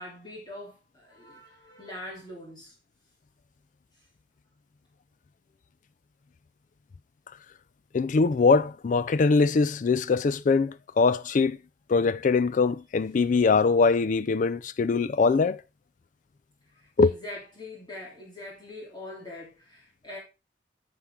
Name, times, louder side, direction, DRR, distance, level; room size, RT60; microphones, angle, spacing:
voice 1, 0.0-2.7 16.7-20.2, left 1 dB, 25° left, 3.2 m, -43 dB
voice 2, 7.9-11.6 11.9-15.6 17.0-17.1, left 4 dB, 45° left, 0.4 m, -22 dB
10.0 x 6.1 x 3.7 m
head